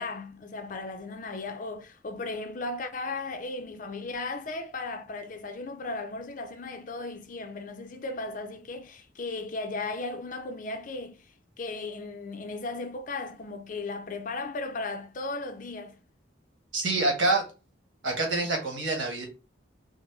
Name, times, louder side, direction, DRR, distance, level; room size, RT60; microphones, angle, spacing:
voice 1, 0.0-11.3 11.6-16.0, left 3 dB, 40° left, 0.5 m, -36 dB
voice 2, 16.7-17.4 18.0-19.3, right 2 dB, 75° right, 1.2 m, -26 dB
4.0 x 2.1 x 3.1 m
head